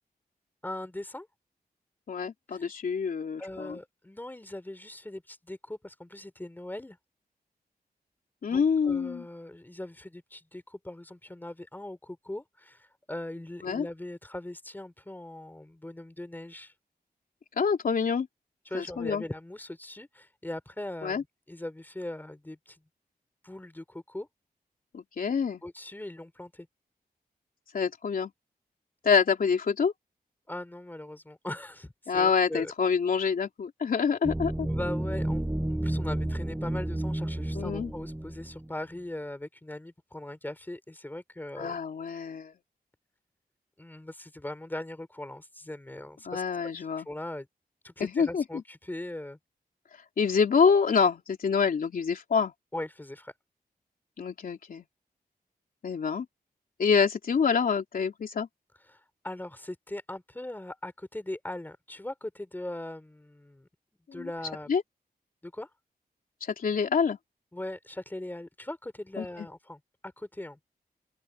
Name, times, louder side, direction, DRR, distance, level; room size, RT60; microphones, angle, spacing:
voice 1, 0.6-1.3 2.5-2.7 3.4-7.0 8.4-16.7 18.7-22.8 23.4-24.3 25.6-26.7 30.5-32.7 34.7-41.8 43.8-46.4 46.8-47.5 47.8-49.4 52.7-53.3 58.9-63.7 64.1-64.7 65.4-65.7 67.5-70.6, left 1 dB, 10° left, 3.5 m, -40 dB
voice 2, 2.1-3.8 8.4-9.2 13.6-13.9 17.6-18.3 18.7-19.2 21.0-21.2 24.9-25.6 27.7-28.3 29.0-29.9 32.1-34.7 37.5-37.9 41.6-42.5 46.2-47.1 48.0-48.4 50.2-52.5 54.2-54.8 55.8-56.2 56.8-58.5 64.1-64.3 64.7-64.8 66.4-67.2 69.2-69.5, left 6 dB, 65° left, 3.3 m, -26 dB
sound 1, 34.2-38.7, right 1 dB, 5° right, 0.8 m, -31 dB
open air
wide cardioid pair, 160°, 16 cm